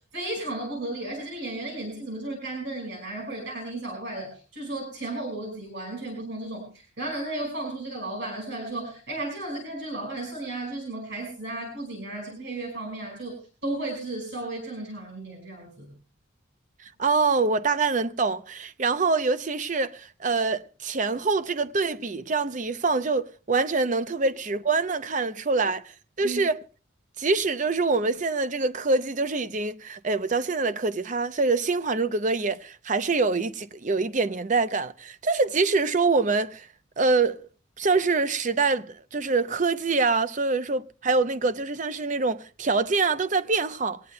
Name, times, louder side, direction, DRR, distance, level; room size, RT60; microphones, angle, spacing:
voice 1, 0.0-15.9 26.2-26.4, right 2 dB, 60° right, 5.2 m, -34 dB
voice 2, 17.0-25.8 26.2-26.6 27.2-36.7 37.0-37.5 37.8-44.0, right 4 dB, 40° right, 0.6 m, -25 dB
23.0 x 18.0 x 2.2 m
head